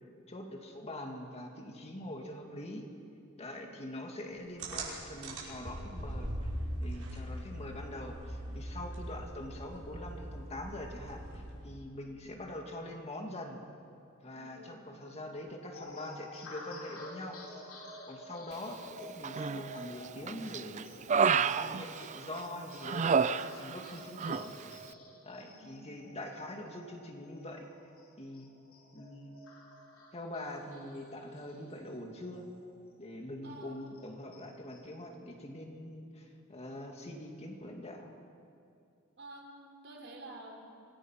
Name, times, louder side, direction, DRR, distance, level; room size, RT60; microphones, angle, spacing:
voice 1, 0.3-2.9 3.4-6.3 6.8-13.6 14.2-17.4 18.1-20.9 21.3-24.6 25.2-27.7 28.2-28.5 28.9-29.3 30.1-32.5 33.0-38.1, left 1 dB, 30° left, 2 dB, 2.1 m, -44 dB
voice 2, 3.4-3.8 14.4-15.2 25.4-26.1 33.4-33.9 39.2-40.6, right 2 dB, 55° right, 2 dB, 3.4 m, -51 dB
sound 1, 4.6-11.8, right 1 dB, 90° right, 5.7 m, -41 dB
sound 2, 15.7-32.6 33.0-33.1 33.5-35.1, left 1 dB, 75° left, 3.8 m, -51 dB
Human voice, 19.2-19.8 20.3-22.4 22.8-23.9 24.2-24.5, right 6 dB, 35° right, 0.4 m, -30 dB
26.5 x 19.0 x 5.8 m, 2.5 s
head